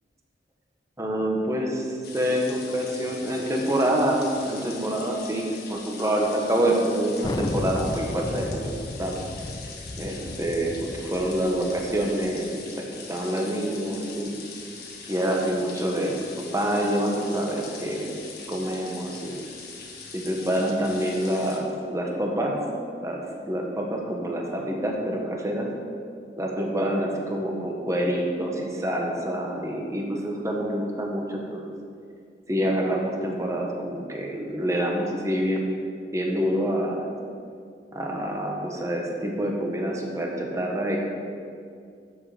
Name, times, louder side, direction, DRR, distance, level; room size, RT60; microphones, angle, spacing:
voice 1, 1.0-8.7 9.0-9.2 10.0-14.3 15.1-16.3 16.5-18.2 18.5-19.4 20.1-22.5 23.0-25.7 26.4-31.7 32.5-35.8 36.1-37.0 37.9-41.0, right 1 dB, 20° right, 0 dB, 1.5 m, -27 dB
sound 1, 2.0-21.6, left 4 dB, 60° left, 1.7 m, -42 dB
Thunder, 7.2-12.4, left 2 dB, 20° left, 0.4 m, -34 dB
12.0 x 7.9 x 5.1 m, 2.3 s
head